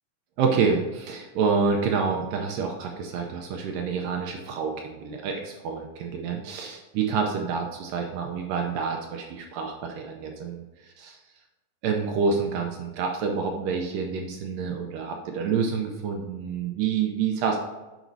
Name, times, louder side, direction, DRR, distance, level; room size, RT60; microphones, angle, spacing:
voice 1, 0.4-10.6 11.0-11.2 11.8-17.6, right 5 dB, 80° right, 2 dB, 2.1 m, -28 dB
9.1 x 5.0 x 2.7 m, 1.1 s
omnidirectional pair, 4.2 m